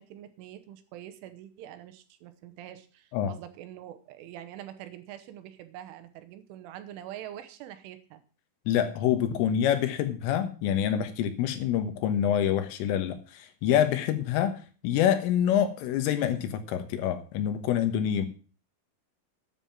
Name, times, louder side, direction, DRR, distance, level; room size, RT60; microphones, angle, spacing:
voice 1, 0.0-8.2, right 11 dB, 85° right, 10 dB, 3.5 m, -45 dB
voice 2, 8.7-18.3, left 9 dB, 85° left, 9 dB, 3.9 m, -26 dB
9.9 x 7.4 x 7.1 m, 0.37 s
omnidirectional pair, 5.6 m